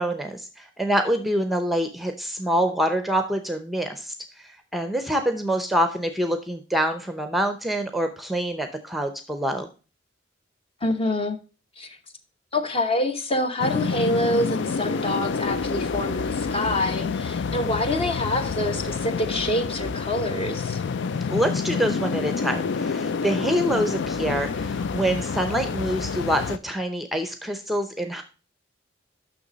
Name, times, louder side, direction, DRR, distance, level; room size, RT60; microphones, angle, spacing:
voice 1, 0.0-9.7 21.0-28.2, equal, ahead, 0.7 m, -26 dB
voice 2, 10.8-11.4 11.8-12.0 12.5-20.8, left 1 dB, 30° left, 0.9 m, -26 dB
sound 1, 13.6-26.6, left 5 dB, 65° left, 0.4 m, -28 dB
6.9 x 6.2 x 5.1 m
head